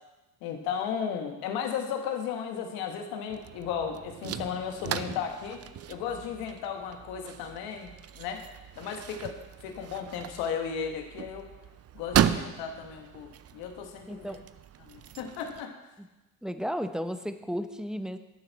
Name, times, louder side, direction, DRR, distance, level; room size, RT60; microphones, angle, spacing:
voice 1, 0.4-5.6 5.9-8.4 8.8-11.5 11.9-14.3 14.8-15.8, left 7 dB, 85° left, 5 dB, 1.5 m, -35 dB
sound 1, 3.3-15.6, right 10 dB, 45° right, 0.6 m, -35 dB
sound 2, 4.1-5.5, right 4 dB, 60° right, 2.7 m, -41 dB
voice 2, 14.1-14.4 16.0-16.1 16.4-18.2, equal, ahead, 9 dB, 0.8 m, -34 dB
12.0 x 9.1 x 4.1 m, 1.1 s
supercardioid pair, 75°, 35 cm